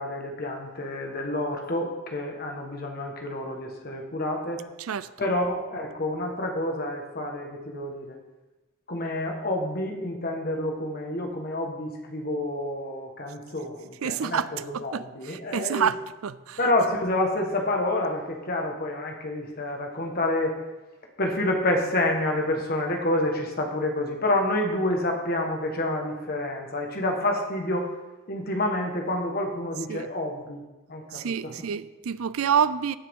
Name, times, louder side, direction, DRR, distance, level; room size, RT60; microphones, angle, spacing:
voice 1, 0.0-4.6 5.2-8.2 8.9-15.9 16.6-20.6 21.2-27.9 28.3-30.6 30.9-31.5, left 1 dB, 45° left, 1.5 m, -28 dB
voice 2, 4.8-5.3 14.0-14.5 14.7-16.6 29.9-30.1 31.1-32.9, right 7 dB, 90° right, 0.5 m, -28 dB
16.5 x 6.7 x 3.7 m
head